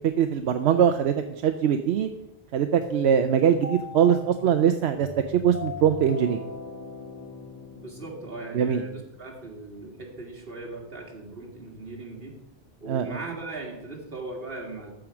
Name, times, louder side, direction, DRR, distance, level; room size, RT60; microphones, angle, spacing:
voice 1, 0.2-2.1 2.5-6.4 8.5-8.8 12.9-13.2, right 8 dB, 85° right, 8 dB, 0.9 m, -22 dB
sound 1, 2.8-9.0, left 3 dB, 15° left, 1.9 m, -40 dB
voice 2, 7.7-12.4 12.8-14.9, right 3 dB, 60° right, 0 dB, 2.2 m, -38 dB
13.5 x 5.0 x 6.0 m, 0.89 s
omnidirectional pair, 1.1 m